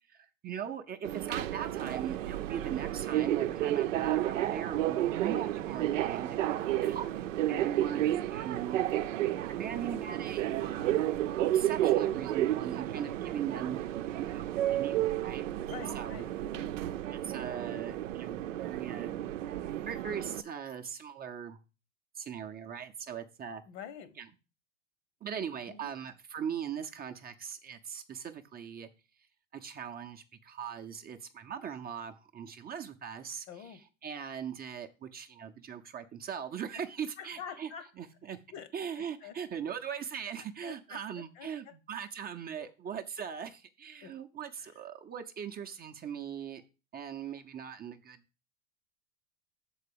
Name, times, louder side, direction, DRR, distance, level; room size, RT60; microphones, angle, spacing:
voice 1, 0.1-8.8 9.5-11.0 11.4-13.8 14.2-14.5 14.7-15.4 15.9-16.2 17.1-19.2 19.9-21.6 22.2-23.6 24.2-24.3 25.2-28.9 29.5-37.7 38.0-38.4 38.7-46.6 46.9-48.2, right 8 dB, 25° right, 0.7 m, -40 dB
Subway metro underground, 1.0-20.4, right 13 dB, 70° right, 0.7 m, -32 dB
voice 2, 15.6-16.7 23.7-24.2 25.7-25.9 33.5-33.8 37.2-37.9 38.5-38.7 38.9-39.4 40.6-41.0 41.3-41.7 42.6-42.7 44.0-44.1 44.6-44.8, left 7 dB, 60° left, 1.3 m, -46 dB
6.6 x 4.7 x 6.8 m
hypercardioid pair, 95°, 39 cm